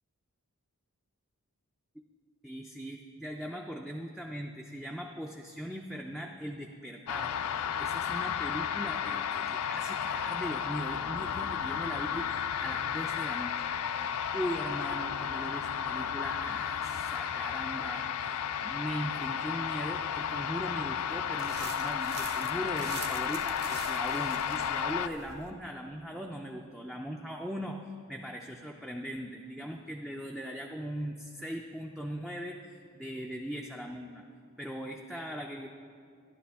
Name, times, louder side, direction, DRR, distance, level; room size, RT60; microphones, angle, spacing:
voice 1, 2.4-13.7 13.9-34.2 34.6-35.7, equal, ahead, 0 dB, 0.3 m, -39 dB
sound 1, 7.1-25.1, left 8 dB, 80° left, 0.4 m, -33 dB
sound 2, 21.4-25.5, right 6 dB, 45° right, 0.8 m, -45 dB
12.5 x 11.0 x 3.5 m, 2.3 s
head